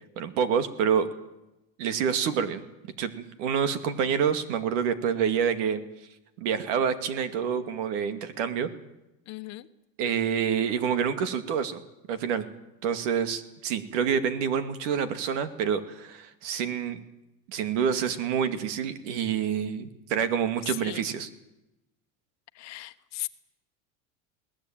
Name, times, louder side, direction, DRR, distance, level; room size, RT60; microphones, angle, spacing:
voice 1, 0.2-1.1 1.8-2.6 3.0-5.8 6.4-8.7 10.0-11.8 12.1-12.5 12.8-17.0 17.5-21.3, right 7 dB, 75° right, 10 dB, 2.4 m, -27 dB
voice 2, 9.3-9.7 20.6-21.0 22.5-23.3, left 17 dB, 45° left, 11 dB, 1.2 m, -37 dB
21.5 x 19.0 x 9.0 m, 0.95 s
supercardioid pair, 130°, 37 cm